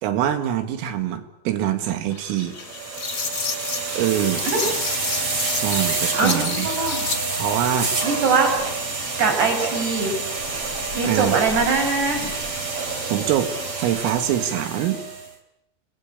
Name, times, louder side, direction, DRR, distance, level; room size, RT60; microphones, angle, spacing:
voice 1, 0.0-2.6 4.0-4.5 5.5-6.7 7.4-7.9 11.0-11.4 13.1-13.5 13.8-15.0, right 11 dB, 80° right, 9 dB, 4.5 m, -24 dB
sound 1, 2.1-7.2, left 5 dB, 35° left, 1.6 m, -31 dB
sound 2, 2.6-15.3, right 3 dB, 35° right, 3.7 m, -28 dB
voice 2, 6.2-7.0 8.0-8.5 9.2-10.1 10.9-12.3, right 4 dB, 55° right, 4 dB, 7.4 m, -22 dB
28.0 x 21.0 x 8.4 m, 0.77 s
omnidirectional pair, 5.9 m